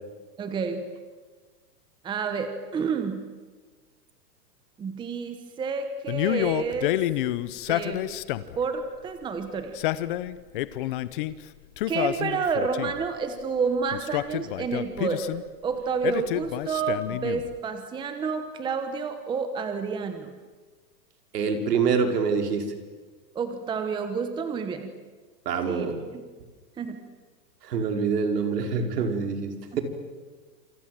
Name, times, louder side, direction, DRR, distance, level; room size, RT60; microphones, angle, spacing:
voice 1, 0.4-0.8 2.0-3.2 4.8-7.0 7.7-8.0 8.6-9.7 11.9-15.3 15.6-20.3 23.3-24.9 25.7-25.9 26.8-27.0 29.7-29.8, right 5 dB, 10° right, 8 dB, 1.2 m, -29 dB
Male speech man speaking, 6.1-8.6 9.6-11.3 11.8-13.0 13.9-15.4 16.0-17.5, left 14 dB, 30° left, 0.8 m, -29 dB
voice 2, 21.3-22.7 25.5-26.0 27.6-29.8, right 5 dB, 70° right, 5 dB, 5.2 m, -25 dB
28.0 x 27.0 x 7.7 m, 1.4 s
hypercardioid pair, 160°, 50 cm